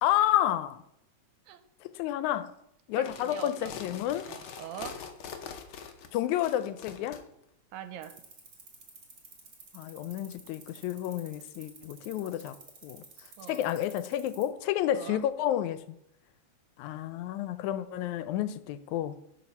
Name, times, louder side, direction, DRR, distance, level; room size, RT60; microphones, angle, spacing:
voice 1, 0.0-0.8 1.8-2.5 2.9-4.3 6.1-7.2 9.7-12.6 12.8-13.0 13.5-15.9 16.8-19.2, left 12 dB, 85° left, 2.0 m, -30 dB
sound 1, 2.9-7.2, left 7 dB, 70° left, 1.2 m, -43 dB
voice 2, 3.0-3.7 4.3-4.9 7.7-8.1 13.4-13.7 15.0-15.2, right 10 dB, 85° right, 2.1 m, -42 dB
sound 2, 8.0-14.5, right 5 dB, 35° right, 2.4 m, -51 dB
11.5 x 4.6 x 5.3 m
omnidirectional pair, 3.3 m